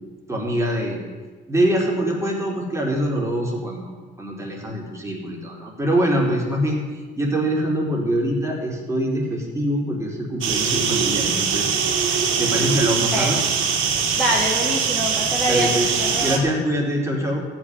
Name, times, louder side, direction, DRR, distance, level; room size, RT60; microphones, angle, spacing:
voice 1, 0.3-1.0 1.5-3.9 4.2-6.8 7.2-11.7 12.4-13.4 15.4-15.9 16.2-17.4, right 1 dB, 15° right, -2 dB, 4.0 m, -24 dB
sound 1, 10.4-16.4, right 6 dB, 85° right, 2.1 m, -22 dB
voice 2, 14.2-16.4, equal, ahead, -5 dB, 2.6 m, -24 dB
13.5 x 6.3 x 9.6 m, 1.4 s
cardioid pair, 90°, 20 cm